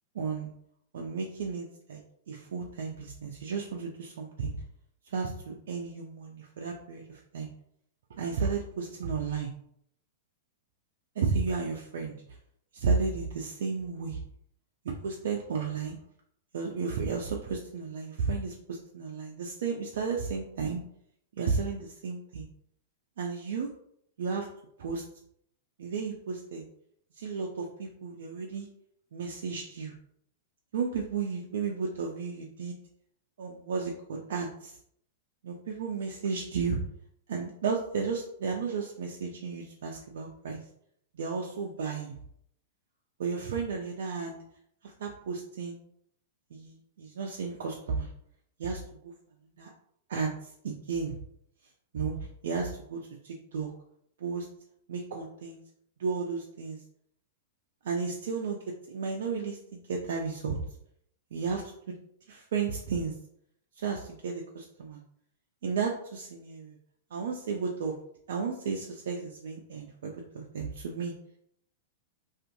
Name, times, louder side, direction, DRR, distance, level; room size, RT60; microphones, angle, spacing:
voice 1, 0.2-0.5 0.9-2.0 2.3-4.6 5.1-7.5 8.2-9.5 11.2-12.1 12.7-14.2 14.9-16.0 16.5-20.8 21.4-22.5 23.2-23.7 24.2-24.5 24.8-25.0 25.8-26.6 27.2-28.7 29.1-29.9 30.7-32.8 33.4-34.7 35.4-36.8 37.3-40.6 41.1-42.2 43.2-44.4 44.8-45.8 46.5-48.1 48.6-49.1 49.6-49.7 50.1-50.3 50.6-51.2 51.9-53.7 54.2-54.5 54.9-55.6 56.0-56.8 57.8-58.6 58.9-60.6 61.3-62.0 62.3-63.1 63.8-65.0 65.6-66.8 67.1-67.9 68.3-71.1, right 5 dB, 65° right, 0 dB, 0.4 m, -33 dB
2.5 x 2.4 x 2.6 m, 0.69 s
hypercardioid pair, 105°, 0 cm